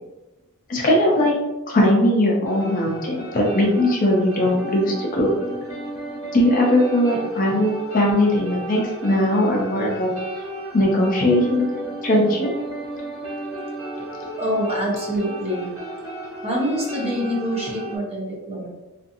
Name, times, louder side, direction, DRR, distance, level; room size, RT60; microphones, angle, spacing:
voice 1, 0.7-1.4 1.7-5.3 6.3-10.1 10.7-12.5, left 1 dB, 35° left, -1 dB, 0.4 m, -19 dB
sound 1, 2.4-18.0, right 1 dB, 5° right, 1.3 m, -34 dB
voice 2, 14.4-15.7 16.4-18.7, equal, 25° right, -4 dB, 0.6 m, -25 dB
2.6 x 2.4 x 2.6 m, 1.1 s
head